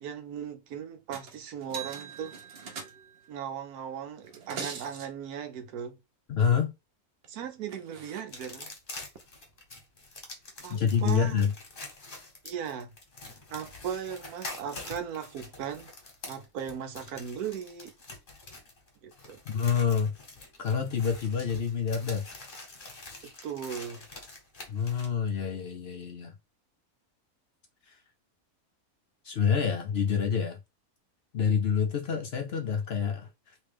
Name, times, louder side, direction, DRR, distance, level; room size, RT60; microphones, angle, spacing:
voice 1, 0.0-2.3 3.3-6.0 7.3-8.7 10.6-11.4 12.4-12.9 13.5-15.9 16.3-17.9 19.0-19.4 23.4-24.0, right 8 dB, 90° right, 1.2 m, -37 dB
sound 1, 1.1-1.4 1.6-3.3 4.2-5.1 7.2-7.3 7.7-8.2 9.2-9.3, right 6 dB, 55° right, 0.8 m, -41 dB
voice 2, 6.3-6.7 10.7-11.5 19.5-20.1 20.6-22.3 24.7-26.3 29.2-30.6 31.3-33.3, left 7 dB, 60° left, 0.7 m, -27 dB
sound 2, 8.3-25.1, left 2 dB, 40° left, 1.3 m, -45 dB
3.2 x 3.1 x 3.3 m
omnidirectional pair, 1.5 m